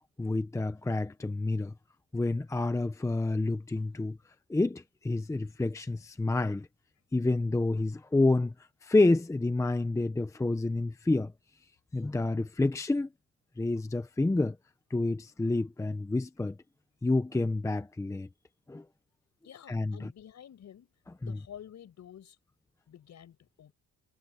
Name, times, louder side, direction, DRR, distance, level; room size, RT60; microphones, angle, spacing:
voice 1, 0.2-1.7 2.1-4.2 4.5-6.7 7.1-8.5 8.8-11.3 11.9-13.1 13.6-14.6 14.9-16.6 17.0-18.3 18.7-18.8 19.7-20.1, left 2 dB, 10° left, 0.7 m, -28 dB
voice 2, 19.4-20.9 21.2-22.4 22.9-23.7, left 9 dB, 55° left, 6.3 m, -50 dB
cardioid pair, 155°, 33 cm